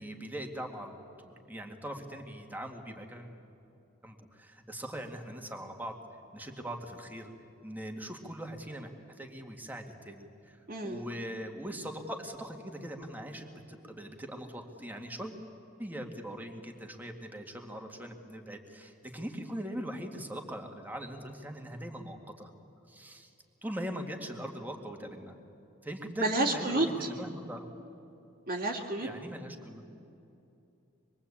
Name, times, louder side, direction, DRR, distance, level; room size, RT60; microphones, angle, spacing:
voice 1, 0.0-3.3 4.0-6.0 6.3-7.3 7.6-8.9 9.2-15.4 15.8-22.5 22.9-23.3 23.6-25.3 25.8-27.7 29.0-29.8, equal, 10° right, 3 dB, 2.1 m, -41 dB
voice 2, 10.7-11.0 26.2-27.1 28.5-29.1, right 2 dB, 50° right, -2 dB, 2.1 m, -30 dB
25.5 x 22.5 x 8.7 m, 2.7 s
head